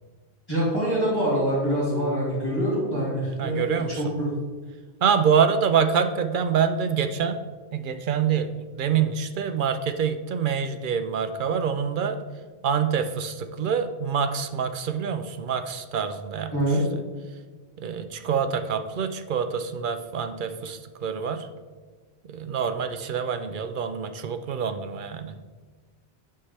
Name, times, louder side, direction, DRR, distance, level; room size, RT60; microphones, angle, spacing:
voice 1, 0.5-4.3 16.5-16.8, right 1 dB, 20° left, -7 dB, 2.5 m, -25 dB
voice 2, 3.4-4.0 5.0-7.4 7.7-12.2 12.6-16.8 17.8-21.5 22.3-25.3, right 7 dB, 60° right, 8 dB, 0.6 m, -26 dB
8.8 x 5.7 x 3.2 m, 1.4 s
omnidirectional pair, 1.1 m